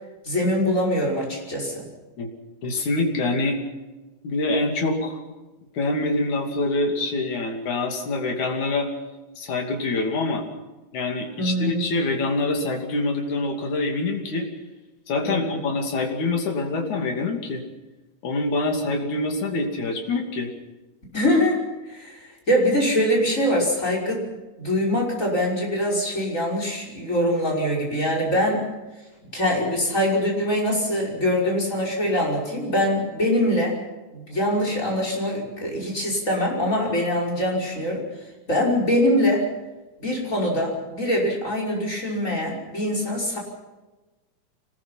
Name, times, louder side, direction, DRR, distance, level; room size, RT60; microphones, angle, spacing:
voice 1, 0.2-1.9 11.4-11.9 15.2-15.6 21.1-24.3 24.6-28.7 29.3-33.8 34.1-38.0 38.5-39.5 40.0-43.4, equal, 25° left, -1 dB, 5.9 m, -23 dB
voice 2, 2.6-3.6 4.2-5.2 5.7-8.9 9.4-10.4 10.9-14.5 15.1-17.6 18.2-20.5, left 2 dB, 80° left, 3 dB, 4.2 m, -25 dB
26.0 x 19.5 x 5.8 m, 1.2 s
omnidirectional pair, 3.4 m